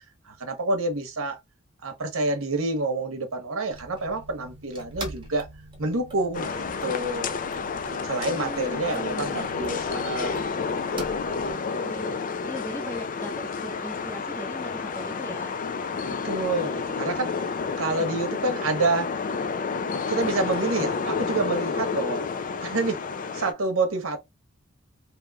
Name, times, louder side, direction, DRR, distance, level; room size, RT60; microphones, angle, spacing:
voice 1, 0.3-1.4 1.8-5.5 5.8-7.3 8.0-10.4 16.2-17.4 17.8-19.2 20.1-22.2 22.6-23.0 23.3-24.2, right 2 dB, 80° right, 0.9 m, -28 dB
sound 1, 3.7-11.5, right 2 dB, 25° right, 1.0 m, -43 dB
sound 2, 6.3-23.5, left 5 dB, 40° left, 0.4 m, -30 dB
voice 2, 8.3-9.5 11.7-12.2 12.4-15.6, equal, 10° left, 0.9 m, -39 dB
3.0 x 2.9 x 2.3 m
head